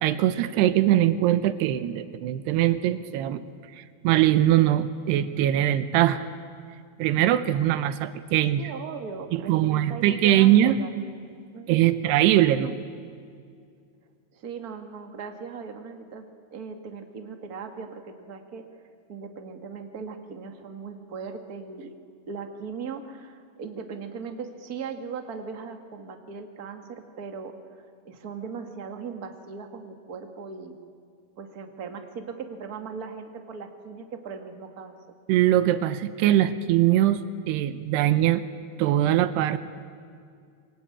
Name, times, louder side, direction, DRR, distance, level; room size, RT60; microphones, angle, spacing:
voice 1, 0.0-3.4 3.7-6.3 7.0-8.7 9.3-10.8 11.7-12.8 35.3-37.2 37.5-38.4 38.8-39.6, right 13 dB, 80° right, 12 dB, 2.9 m, -22 dB
voice 2, 8.6-10.9 11.5-12.0 14.3-16.2 16.5-18.7 19.1-22.0 22.3-27.5 28.0-30.8 31.4-35.0, right 5 dB, 55° right, 5 dB, 1.0 m, -38 dB
27.5 x 23.5 x 8.7 m, 2.2 s
omnidirectional pair, 4.8 m